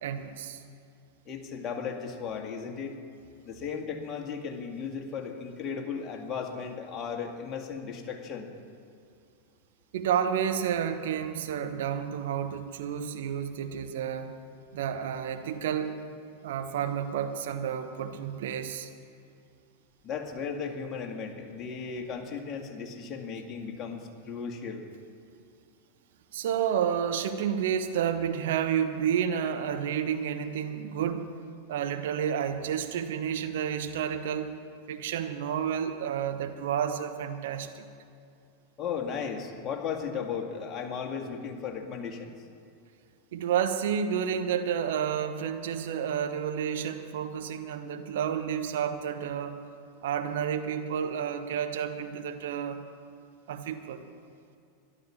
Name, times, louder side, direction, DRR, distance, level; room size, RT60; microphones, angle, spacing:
voice 1, 0.0-0.6 9.9-14.3 14.7-16.0 16.4-18.9 26.3-31.3 31.7-34.5 34.9-37.8 43.3-49.6 50.0-52.8 53.5-54.0, right 8 dB, 65° right, 8 dB, 1.0 m, -30 dB
voice 2, 1.3-3.0 3.4-8.5 20.0-24.9 38.8-42.4, left 6 dB, 35° left, 2 dB, 2.1 m, -36 dB
13.0 x 11.5 x 7.3 m, 2.4 s
figure-of-eight pair, 90°, 0 cm